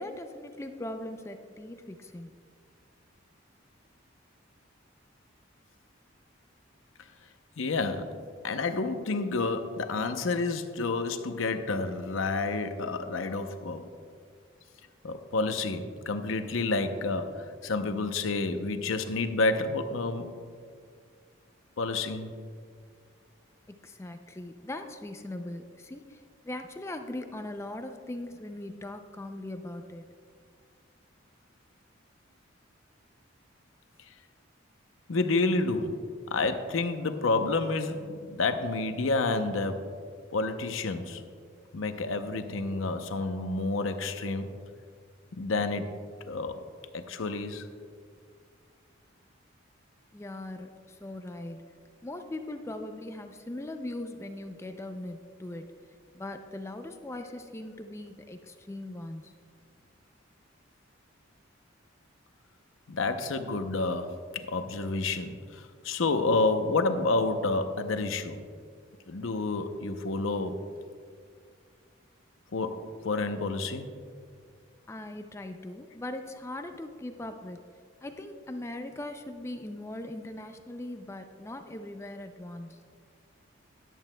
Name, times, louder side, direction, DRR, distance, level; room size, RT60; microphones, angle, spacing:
voice 1, 0.0-2.3 23.7-30.1 50.1-51.7 52.0-55.7 56.1-59.3 74.9-77.6 78.0-82.8, left 1 dB, 15° left, 7 dB, 0.4 m, -40 dB
voice 2, 7.6-8.2 8.4-13.8 15.0-20.3 21.8-22.3 35.1-36.0 36.3-39.8 40.3-41.2 41.7-44.5 45.3-45.9 46.3-46.6 46.9-47.7 62.9-68.5 69.1-70.6 72.5-73.9, left 3 dB, 85° left, 8 dB, 0.7 m, -29 dB
13.5 x 11.0 x 2.2 m, 2.1 s
head